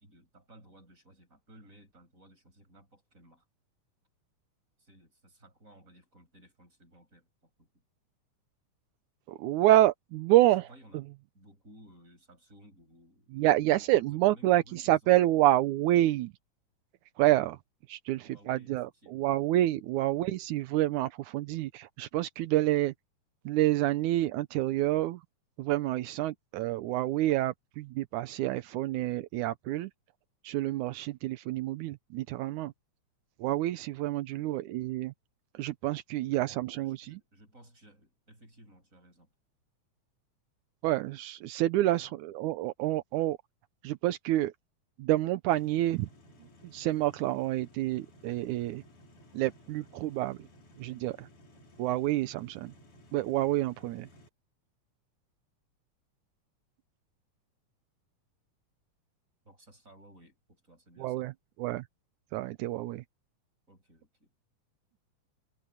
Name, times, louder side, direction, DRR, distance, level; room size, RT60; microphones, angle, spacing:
voice 1, 0.0-3.5 4.8-7.8 10.7-11.0 11.3-15.5 18.2-19.3 34.3-34.6 36.7-39.3 41.9-42.2 59.4-61.3 63.7-64.3, right 1 dB, 25° right, 8.2 m, -58 dB
voice 2, 9.3-10.7 13.3-16.3 17.2-17.6 17.9-22.9 23.5-25.2 25.6-29.9 30.4-32.7 33.4-35.1 35.5-37.2 40.8-43.4 43.8-44.5 45.0-46.1 46.6-48.8 49.3-50.5 50.8-51.3 51.8-52.7 53.1-54.1 61.0-61.3 61.6-61.9 62.3-63.0, right 15 dB, 85° right, 2.2 m, -28 dB
sound 1, 45.5-54.3, equal, 85° left, 6.3 m, -57 dB
omnidirectional pair, 3.4 m